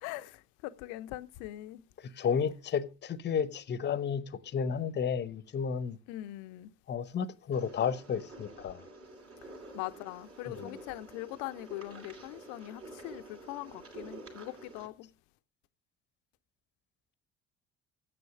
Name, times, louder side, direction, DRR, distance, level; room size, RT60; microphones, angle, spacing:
voice 1, 0.0-1.8 6.1-6.7 9.7-15.1, left 17 dB, 55° left, 0.8 m, -42 dB
voice 2, 2.2-4.2 4.5-6.0 6.9-8.8 10.5-10.8, left 7 dB, 30° left, 1.0 m, -32 dB
sound 1, 7.5-14.9, right 2 dB, 40° right, 2.8 m, -49 dB
9.3 x 7.7 x 6.4 m
figure-of-eight pair, 55°, 35 cm